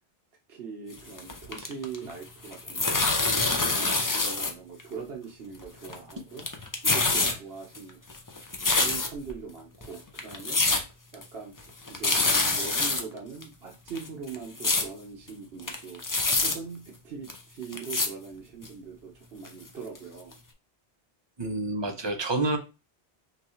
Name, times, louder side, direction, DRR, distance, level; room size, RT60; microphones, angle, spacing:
voice 1, 0.5-6.4 6.8-8.0 8.7-10.6 11.1-11.5 11.9-16.0 16.4-20.4, right 5 dB, 65° right, -1 dB, 1.1 m, -41 dB
sound 1, 1.0-2.2 2.4-4.5 4.8-4.9 5.6-6.1 6.4-7.3 7.8-9.3 9.8-9.9 10.2-10.8 11.1-11.2 11.6-11.7 11.9-13.0 13.4-13.5 13.9-14.9 15.3-15.4 15.6-16.6 17.3-17.4 17.7-18.1 18.6-18.7 19.5-19.6 20.0-20.1 20.3-20.4, left 3 dB, 30° left, 0.4 m, -26 dB
voice 2, 21.4-22.6, right 2 dB, 30° right, 4 dB, 0.6 m, -28 dB
5.7 x 2.3 x 3.0 m, 0.29 s
omnidirectional pair, 1.1 m